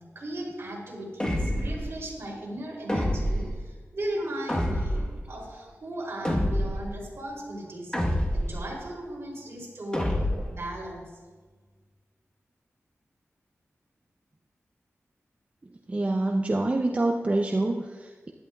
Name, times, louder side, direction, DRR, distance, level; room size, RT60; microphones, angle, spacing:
voice 1, 0.1-10.1 10.4-11.0, right 1 dB, 60° right, -2 dB, 3.0 m, -37 dB
sound 1, 1.2-1.9 2.9-3.5 4.5-5.2 6.2-6.9 7.9-8.6 9.9-10.6, equal, 15° left, 1.2 m, -27 dB
voice 2, 15.9-18.3, right 2 dB, 30° right, 2 dB, 0.5 m, -26 dB
15.5 x 11.0 x 2.3 m, 1.4 s
wide cardioid pair, 120°, 5 cm